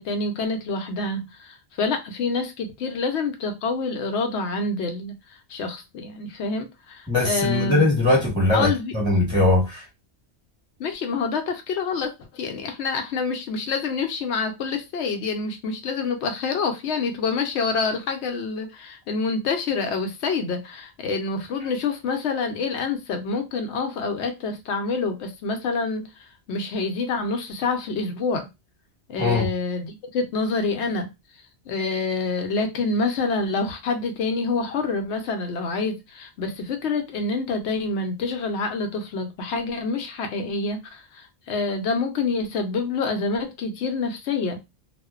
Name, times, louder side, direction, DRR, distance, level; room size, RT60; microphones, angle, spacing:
voice 1, 0.0-7.9 8.5-8.9 10.8-28.5 29.1-31.1 31.7-44.6, left 4 dB, 85° left, 0.9 m, -27 dB
voice 2, 7.1-9.8 29.2-29.5, left 2 dB, 5° left, 1.0 m, -20 dB
2.5 x 2.1 x 2.3 m
omnidirectional pair, 1.1 m